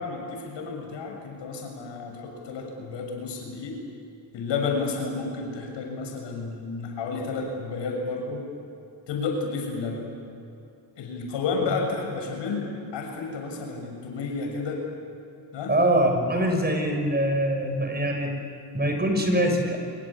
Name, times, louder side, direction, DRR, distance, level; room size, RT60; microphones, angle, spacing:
voice 1, 0.0-3.8 4.3-8.5 9.1-10.1 11.0-14.8 15.5-15.7, left 4 dB, 75° left, 1 dB, 7.2 m, -31 dB
voice 2, 15.7-18.3 18.7-19.8, right 1 dB, 20° right, 3 dB, 6.2 m, -23 dB
25.5 x 22.5 x 8.5 m, 2.8 s
cardioid pair, 85°, 44 cm